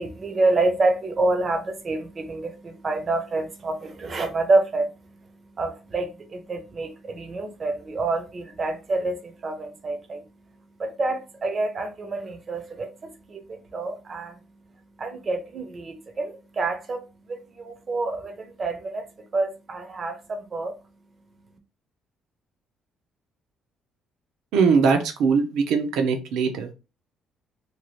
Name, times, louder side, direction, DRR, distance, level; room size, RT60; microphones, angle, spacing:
voice 1, 0.0-21.6, right 2 dB, 35° right, 0.6 m, -28 dB
voice 2, 24.5-26.7, right 5 dB, 85° right, 0.6 m, -21 dB
2.7 x 2.4 x 3.1 m
cardioid pair, 110°, 0 cm